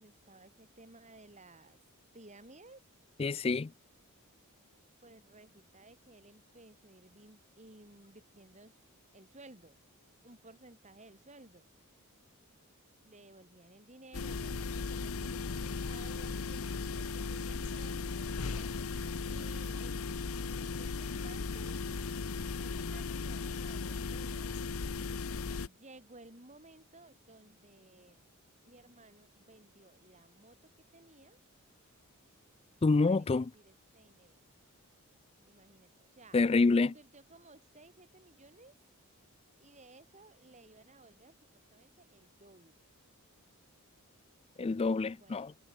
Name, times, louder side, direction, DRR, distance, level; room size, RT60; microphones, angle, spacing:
voice 1, 0.0-1.8 2.1-2.8 5.0-8.8 9.1-9.8 10.2-11.7 13.0-19.0 19.3-22.0 22.6-24.7 25.6-28.3 28.7-31.4 33.0-34.5 35.4-36.4 36.8-38.7 39.6-42.9 45.1-45.5, right 2 dB, 30° right, 4.9 m, -57 dB
voice 2, 3.2-3.7 32.8-33.5 36.3-36.9 44.6-45.5, left 3 dB, 25° left, 0.3 m, -27 dB
sound 1, 14.1-25.7, left 4 dB, 70° left, 0.8 m, -37 dB
head